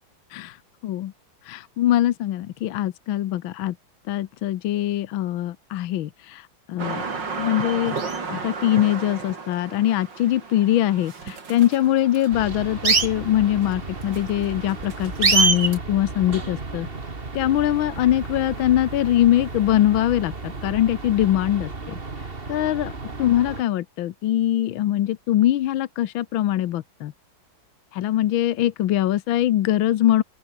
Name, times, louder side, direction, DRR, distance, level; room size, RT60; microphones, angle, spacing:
voice 1, 1.4-3.7 4.1-7.0 7.4-8.0 8.3-16.9 17.3-22.9 23.2-27.1 27.9-30.2, left 13 dB, 75° left, 1.6 m, -22 dB
sound 1, 6.8-15.8, right 4 dB, 60° right, 3.8 m, -26 dB
sound 2, 12.3-23.6, right 3 dB, 30° right, 2.4 m, -34 dB
open air
omnidirectional pair, 2.2 m